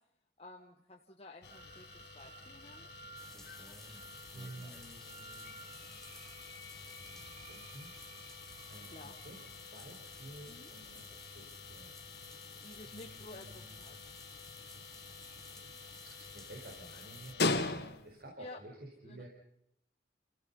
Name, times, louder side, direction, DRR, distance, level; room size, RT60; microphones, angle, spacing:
voice 1, 0.4-1.9 2.1-2.9 8.8-9.2 10.5-10.7 12.6-14.0 18.4-18.6 19.0-19.3, left 2 dB, 35° left, 0 dB, 1.6 m, -52 dB
sound 1, 1.4-18.3, left 3 dB, 60° left, 1.7 m, -43 dB
sound 2, 1.5-9.5, right 4 dB, 35° right, 1.5 m, -55 dB
sound 3, 3.2-17.3, left 1 dB, 5° left, 1.3 m, -55 dB
voice 2, 3.6-6.1 6.7-7.9 8.7-9.4 9.7-11.9 12.8-13.8 16.0-19.3, right 1 dB, 55° right, 0 dB, 4.4 m, -53 dB
29.0 x 16.0 x 5.6 m, 0.78 s
head